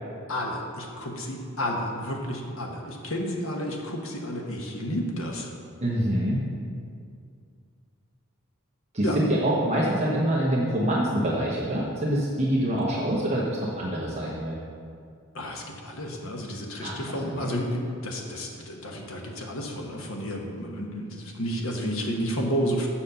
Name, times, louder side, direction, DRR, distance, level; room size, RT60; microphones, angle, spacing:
voice 1, 0.3-5.5 9.0-9.2 15.3-22.9, equal, 65° left, 1 dB, 1.3 m, -31 dB
voice 2, 5.8-6.4 8.9-14.6 16.8-16.9 17.4-17.5, right 1 dB, 30° right, -6 dB, 1.0 m, -25 dB
7.2 x 5.8 x 6.8 m, 2.3 s
head